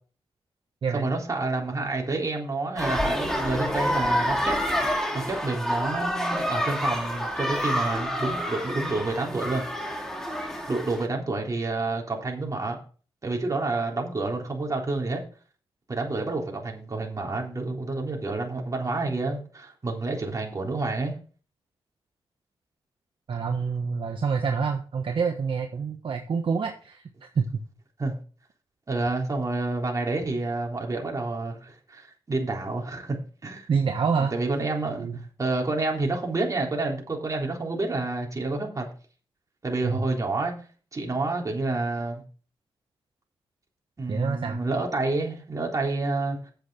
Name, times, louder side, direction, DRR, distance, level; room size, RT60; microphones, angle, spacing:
voice 1, 0.9-4.9 5.1-9.6 10.7-12.8 13.2-15.2 15.9-21.2 28.0-28.2 28.9-33.7 34.2-35.1 35.4-38.9 39.6-40.6 40.9-42.2 44.0-46.5, right 3 dB, 35° right, 0 dB, 3.6 m, -29 dB
sound 1, 2.8-11.1, equal, 5° left, 2.3 m, -28 dB
voice 2, 23.3-27.6 33.7-34.3 35.0-35.2 39.8-40.0 44.1-44.6, right 5 dB, 60° right, 4 dB, 1.2 m, -27 dB
9.3 x 7.6 x 4.8 m, 0.38 s
cardioid pair, 90°, 10 cm